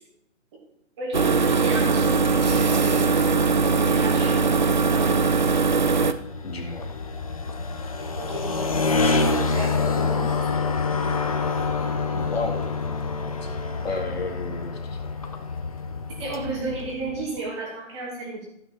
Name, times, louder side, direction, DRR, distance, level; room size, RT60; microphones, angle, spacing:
voice 1, 1.0-3.2 3.7-5.2 7.9-10.7 13.9-14.0 16.1-18.5, right 3 dB, 20° right, -1 dB, 2.6 m, -34 dB
sound 1, 1.1-6.1, right 4 dB, 40° right, 0.5 m, -20 dB
sound 2, 6.0-17.3, left 4 dB, 30° left, 0.7 m, -27 dB
voice 2, 6.4-6.9 12.1-12.7 13.4-13.5 13.8-15.0, left 3 dB, 55° left, 2 dB, 2.1 m, -32 dB
14.0 x 6.0 x 4.6 m, 0.80 s
hypercardioid pair, 165°, 38 cm